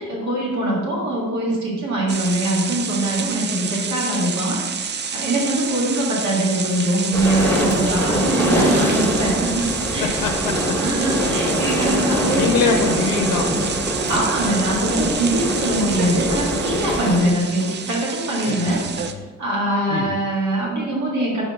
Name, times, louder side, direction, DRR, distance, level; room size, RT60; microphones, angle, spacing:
voice 1, 0.0-10.2 10.7-12.9 14.1-19.1 19.4-21.4, right 1 dB, 70° right, -4 dB, 1.8 m, -23 dB
sound 1, 2.1-19.1, right 6 dB, 35° right, 0.5 m, -28 dB
sound 2, 7.1-17.2, equal, 5° left, 1.7 m, -23 dB
voice 2, 9.8-10.8 12.4-13.5 18.4-19.2 19.9-20.2, left 5 dB, 90° left, 5 dB, 0.5 m, -24 dB
4.8 x 3.8 x 5.2 m, 1.3 s
cardioid pair, 90°, 30 cm